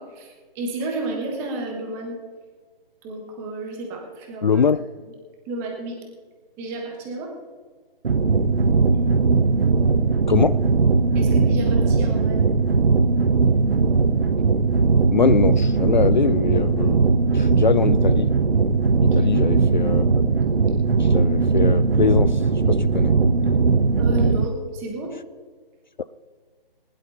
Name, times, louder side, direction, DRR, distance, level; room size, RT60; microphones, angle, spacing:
voice 1, 0.0-2.2 3.0-4.6 5.0-5.1 5.5-6.0 6.6-7.3 11.1-12.5 18.9-19.5 24.0-25.2, right 2 dB, 10° right, 1 dB, 1.1 m, -32 dB
voice 2, 4.4-4.8 10.3-10.6 15.1-18.3 19.0-20.0 21.0-23.2, left 6 dB, 50° left, 16 dB, 0.4 m, -22 dB
sound 1, 8.0-24.5, right 4 dB, 70° right, 1.0 m, -19 dB
20.0 x 11.0 x 3.9 m, 1.5 s
figure-of-eight pair, 160°, 29 cm